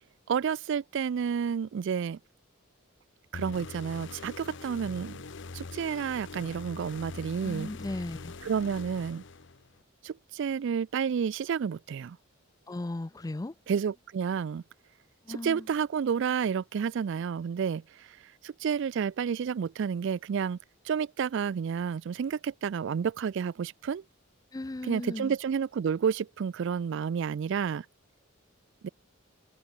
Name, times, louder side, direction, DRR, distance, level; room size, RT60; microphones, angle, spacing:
voice 1, 0.3-2.2 3.3-5.2 5.5-7.7 8.4-9.2 10.0-12.2 13.7-14.6 15.3-18.2 18.4-20.6 20.9-24.0 24.8-27.9 28.8-28.9, right 7 dB, 60° right, 0.3 m, -30 dB
sound 1, 3.3-9.8, left 3 dB, 60° left, 0.9 m, -43 dB
voice 2, 7.4-8.3 12.7-13.5 15.3-15.7 24.5-25.3, left 2 dB, 15° left, 0.4 m, -36 dB
head